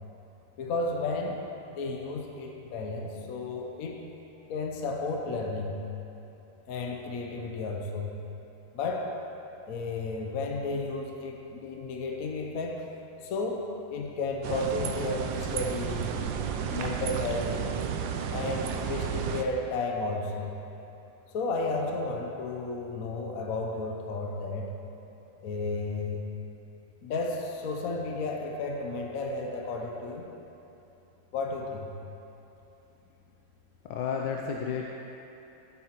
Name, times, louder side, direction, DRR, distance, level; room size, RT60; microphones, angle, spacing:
voice 1, 0.6-1.5 1.8-4.0 4.5-5.8 6.7-8.2 8.7-9.1 9.7-12.8 13.2-16.3 16.6-17.7 18.3-20.5 21.3-24.7 25.4-26.3 27.0-30.3 31.3-31.9, left 3 dB, 60° left, 1 dB, 1.1 m, -33 dB
sound 1, 14.4-19.4, right 7 dB, 90° right, 1.3 m, -32 dB
voice 2, 33.9-34.8, left 6 dB, 90° left, 0 dB, 1.3 m, -31 dB
12.5 x 8.4 x 3.0 m, 3.0 s
omnidirectional pair, 2.0 m